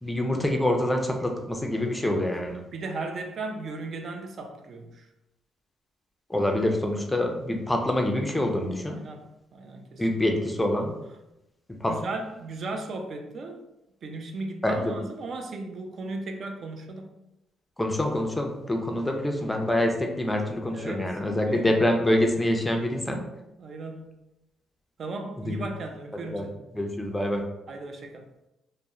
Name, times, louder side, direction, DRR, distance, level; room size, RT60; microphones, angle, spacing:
voice 1, 0.0-2.6 6.3-9.0 10.0-11.0 11.7-12.0 14.6-15.0 17.8-23.2 25.4-25.7 26.1-26.5 26.7-27.4, left 1 dB, 10° left, 2 dB, 0.4 m, -26 dB
voice 2, 2.7-5.0 8.9-9.2 9.5-10.0 11.9-13.6 14.0-17.1 20.7-21.1 21.4-21.7 23.6-24.1 25.0-26.5 27.7-28.2, right 3 dB, 55° right, 4 dB, 0.4 m, -36 dB
2.7 x 2.0 x 2.3 m, 0.90 s
cardioid pair, 90°, 0 cm